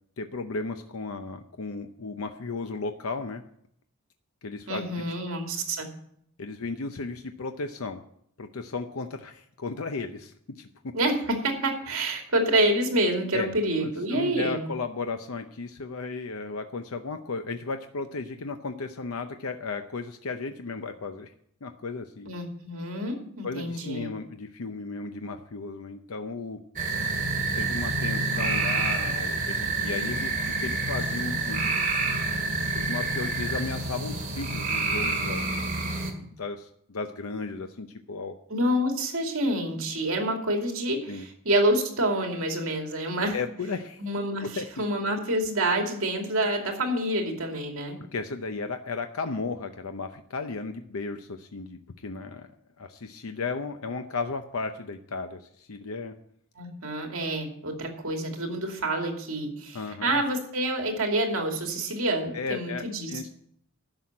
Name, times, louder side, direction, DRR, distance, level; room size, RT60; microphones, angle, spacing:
voice 1, 0.2-3.4 4.4-5.1 6.4-8.0 8.4-10.9 13.3-13.5 13.8-21.3 21.6-22.3 23.4-26.6 27.5-31.7 32.7-35.5 36.4-38.4 41.1-41.3 43.3-44.0 44.4-44.7 48.0-52.5 52.8-56.1 59.7-60.2 62.3-63.3, left 4 dB, 75° left, 7 dB, 0.7 m, -35 dB
voice 2, 4.7-5.9 10.9-14.7 22.2-24.1 38.5-43.4 44.0-48.0 56.6-63.3, right 1 dB, 65° right, 2 dB, 2.6 m, -27 dB
sound 1, 26.8-36.1, right 3 dB, 40° right, 2.2 m, -28 dB
11.5 x 6.3 x 8.4 m, 0.68 s
head